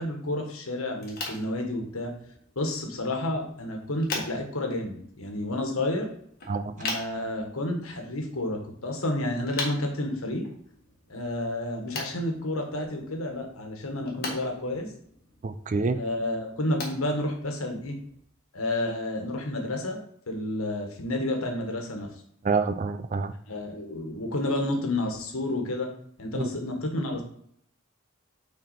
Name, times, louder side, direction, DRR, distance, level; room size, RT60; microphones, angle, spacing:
voice 1, 0.0-2.1 2.5-6.1 6.8-10.4 11.1-14.9 15.9-18.0 18.5-20.0 20.3-22.1 23.5-25.9 26.2-27.2, left 1 dB, 85° left, 2 dB, 1.4 m, -30 dB
sound 1, 0.9-18.2, left 3 dB, 45° left, 1.5 m, -42 dB
voice 2, 15.4-16.0 22.4-23.3 26.3-26.4, right 4 dB, 35° right, 11 dB, 0.3 m, -26 dB
6.1 x 4.2 x 4.2 m, 0.65 s
head